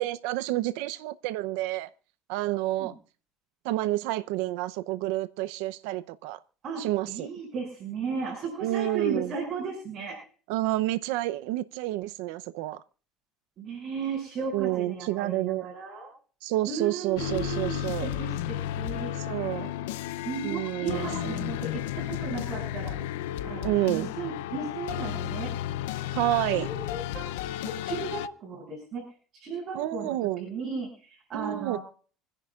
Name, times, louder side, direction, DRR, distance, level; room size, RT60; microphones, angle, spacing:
voice 1, 0.0-1.9 2.3-2.9 3.6-6.4 6.8-7.3 8.6-9.3 10.5-12.8 14.5-15.7 16.4-18.1 19.1-19.7 20.4-21.3 23.6-24.1 26.1-26.7 29.7-30.5 31.3-31.8, right 16 dB, 80° right, 0.6 m, -29 dB
voice 2, 6.6-10.2 13.6-16.1 16.7-19.1 20.2-23.0 23.4-25.5 26.5-27.3 27.6-29.0 29.3-30.1 30.4-31.8, right 4 dB, 50° right, 7.5 m, -35 dB
sound 1, 17.2-28.3, left 13 dB, 90° left, 0.6 m, -33 dB
27.5 x 10.5 x 2.4 m
supercardioid pair, 105°, 0 cm